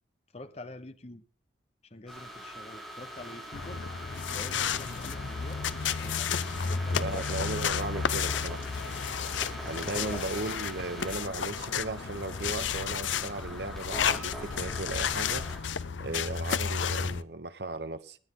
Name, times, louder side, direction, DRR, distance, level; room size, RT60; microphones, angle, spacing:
voice 1, 0.3-1.2 1.8-3.9 4.3-6.4 6.7-7.8 9.8-10.2, left 2 dB, 35° left, 1.0 m, -45 dB
sound 1, 2.1-15.6, equal, 5° left, 7.5 m, -43 dB
sound 2, 3.5-17.2, left 7 dB, 85° left, 0.6 m, -32 dB
voice 2, 6.9-8.6 9.6-15.5 16.0-18.2, right 2 dB, 60° right, 0.9 m, -36 dB
19.5 x 9.8 x 3.8 m
head